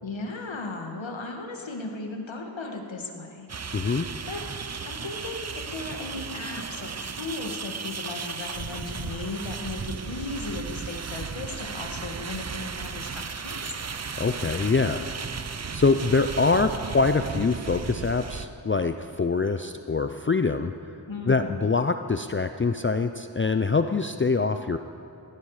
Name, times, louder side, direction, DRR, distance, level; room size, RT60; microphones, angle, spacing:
voice 1, 0.0-3.5 4.3-4.4 4.9-13.8 21.1-21.5, left 3 dB, 85° left, 2 dB, 1.9 m, -36 dB
sound 1, 3.5-18.5, right 5 dB, 35° right, 0.6 m, -35 dB
voice 2, 3.7-4.1 14.2-15.1 15.7-20.7 21.3-24.8, left 4 dB, 30° left, 8 dB, 0.5 m, -24 dB
17.5 x 16.5 x 4.9 m, 2.7 s
wide cardioid pair, 70°, 45 cm